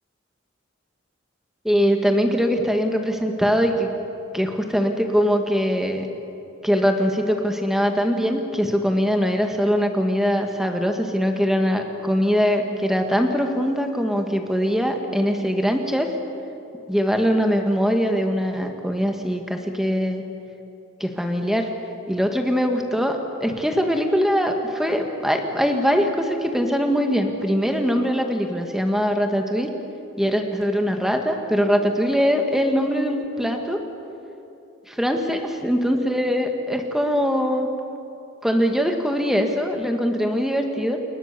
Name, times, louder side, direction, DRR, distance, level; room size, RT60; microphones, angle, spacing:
voice 1, 1.6-3.9 4.3-6.1 6.6-16.1 16.9-20.2 21.0-21.7 22.1-29.7 30.2-33.8 34.9-37.7 38.4-41.0, equal, ahead, 4 dB, 1.9 m, -22 dB
29.5 x 21.0 x 7.0 m, 2.9 s
head